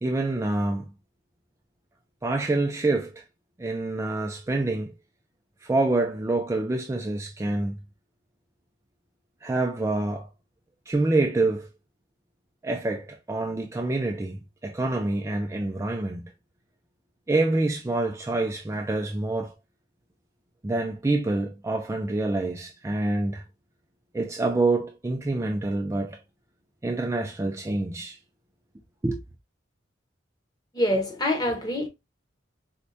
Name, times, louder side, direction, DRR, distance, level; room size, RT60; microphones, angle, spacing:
voice 1, 0.0-0.9 2.2-3.2 3.6-4.9 5.6-7.8 9.4-10.3 10.9-11.7 12.6-16.3 17.3-19.5 20.6-23.4 24.1-26.2 26.8-28.2 29.0-29.2, right 2 dB, 15° right, 0.3 m, -26 dB
voice 2, 30.7-31.9, left 1 dB, 20° left, 0.8 m, -25 dB
4.3 x 2.2 x 2.5 m
head